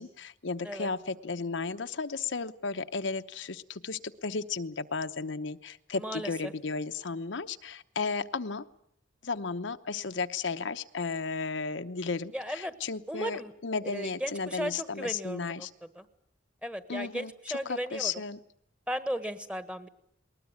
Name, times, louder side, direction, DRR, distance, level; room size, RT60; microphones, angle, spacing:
voice 1, 0.0-8.6 9.2-15.7 16.9-17.3 17.7-18.4, left 4 dB, 75° left, 9 dB, 0.9 m, -34 dB
voice 2, 5.9-6.5 12.3-12.7 13.1-13.5 13.9-15.7 15.9-16.0 16.6-18.2 18.9-19.9, equal, 5° right, 11 dB, 1.4 m, -36 dB
20.0 x 20.0 x 9.7 m, 0.71 s
head